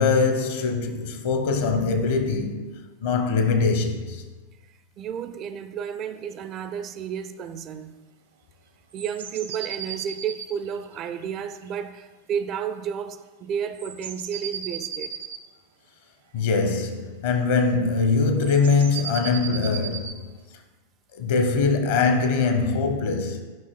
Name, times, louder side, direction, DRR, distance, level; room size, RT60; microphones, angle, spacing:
voice 1, 0.0-2.6 3.0-4.2 16.3-20.3 21.1-23.4, left 4 dB, 55° left, 0.8 m, -22 dB
voice 2, 4.7-8.0 8.9-15.2, right 8 dB, 35° right, 0.3 m, -32 dB
sound 1, 8.9-11.7 13.7-15.4 18.4-20.2, right 8 dB, 65° right, 0.7 m, -36 dB
9.6 x 5.5 x 2.3 m
figure-of-eight pair, 90°, 0 cm